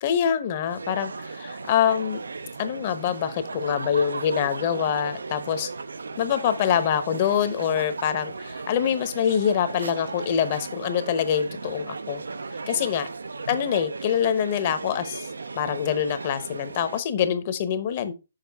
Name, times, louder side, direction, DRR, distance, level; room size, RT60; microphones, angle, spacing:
voice 1, 0.0-2.2 2.6-5.7 6.2-12.2 12.7-13.1 13.5-15.3 15.5-18.1, left 8 dB, 35° left, 10 dB, 0.9 m, -25 dB
sound 1, 0.7-17.0, right 4 dB, 85° right, 0.5 m, -36 dB
6.7 x 5.0 x 3.5 m, 0.27 s
hypercardioid pair, 155°, 0 cm